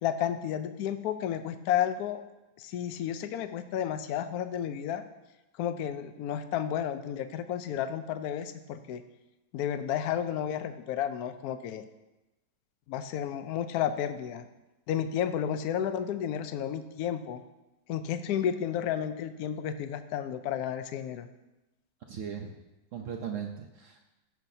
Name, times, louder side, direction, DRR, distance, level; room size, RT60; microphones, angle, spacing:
voice 1, 0.0-2.2 2.6-5.1 5.6-9.0 9.5-11.8 12.9-14.5 14.9-17.4 17.9-21.3, left 9 dB, 70° left, 10 dB, 1.0 m, -32 dB
voice 2, 22.1-22.6 22.9-24.1, right 7 dB, 65° right, 3 dB, 0.8 m, -38 dB
15.5 x 5.9 x 2.7 m, 1.0 s
omnidirectional pair, 1.9 m